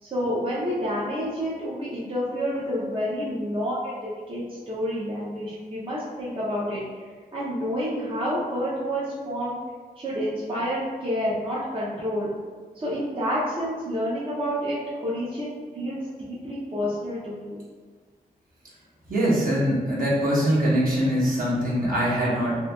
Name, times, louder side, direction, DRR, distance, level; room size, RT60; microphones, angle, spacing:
voice 1, 0.0-3.9 4.3-6.8 7.3-9.6 10.0-12.3 12.8-17.6, equal, 35° right, -8 dB, 0.5 m, -29 dB
voice 2, 19.1-22.6, equal, 60° right, -7 dB, 0.9 m, -23 dB
2.7 x 2.6 x 2.2 m, 1.5 s
wide cardioid pair, 115°, 16 cm